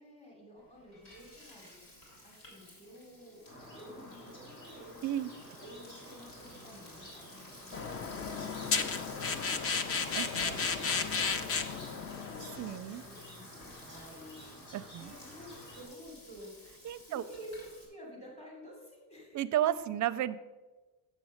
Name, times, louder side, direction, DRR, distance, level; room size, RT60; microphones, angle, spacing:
voice 1, 0.0-1.8 2.2-3.4 3.7-4.9 5.6-12.5 12.8-14.5 14.9-16.5 17.1-19.4, equal, 15° left, -3 dB, 3.0 m, -52 dB
Frying (food), 0.6-17.9, left 1 dB, 80° left, 3.6 m, -54 dB
sound 1, 3.5-15.8, left 1 dB, 50° left, 3.4 m, -51 dB
sound 2, 7.7-12.8, left 5 dB, 35° left, 0.6 m, -33 dB
voice 2, 10.2-10.7 12.6-13.0 14.7-15.1 16.8-17.2 19.3-20.4, right 12 dB, 50° right, 14 dB, 0.4 m, -33 dB
7.4 x 7.2 x 6.5 m, 1.2 s
cardioid pair, 150°, 40 cm